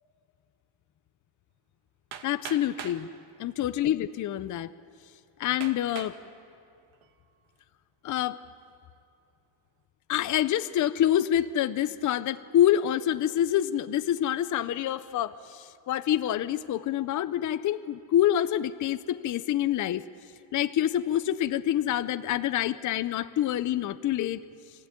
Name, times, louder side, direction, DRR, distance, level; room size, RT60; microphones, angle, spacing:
Hammer, 2.1-3.0 3.9-4.0 4.6-4.7 5.6-6.2 6.8-7.2, right 8 dB, 75° right, 2.0 m, -41 dB
voice 1, 2.2-3.1 3.4-4.7 5.4-6.1 8.0-8.4 10.1-20.1 20.5-24.4, left 11 dB, 40° left, 13 dB, 0.6 m, -26 dB
25.0 x 15.5 x 9.7 m, 2.4 s
cardioid pair, 135°, 48 cm